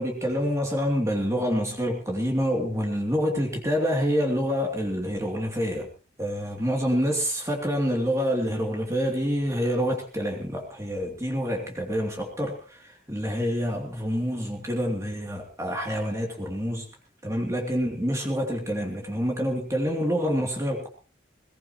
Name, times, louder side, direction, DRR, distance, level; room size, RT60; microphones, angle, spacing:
voice 1, 0.0-5.9 6.2-16.9 17.2-20.9, equal, 15° right, 1 dB, 2.9 m, -27 dB
20.5 x 18.5 x 3.1 m, 0.37 s
head